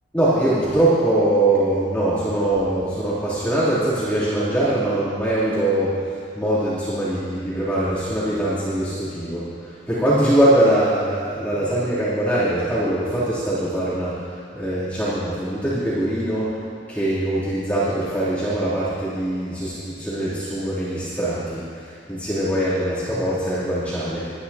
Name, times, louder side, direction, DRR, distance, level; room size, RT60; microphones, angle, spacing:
voice 1, 0.1-16.5 16.9-24.3, right 1 dB, 10° left, -13 dB, 3.1 m, -22 dB
22.0 x 10.5 x 2.9 m, 2.3 s
head